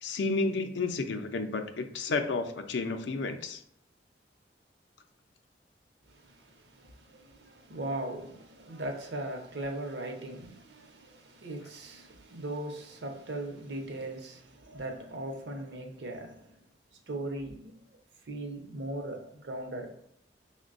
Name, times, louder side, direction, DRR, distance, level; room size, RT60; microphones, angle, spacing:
voice 1, 0.0-3.6, left 3 dB, 80° left, 0.5 m, -31 dB
voice 2, 6.1-16.6 17.1-18.0 18.2-19.9, right 1 dB, 70° right, 0.7 m, -39 dB
5.9 x 2.2 x 2.5 m
head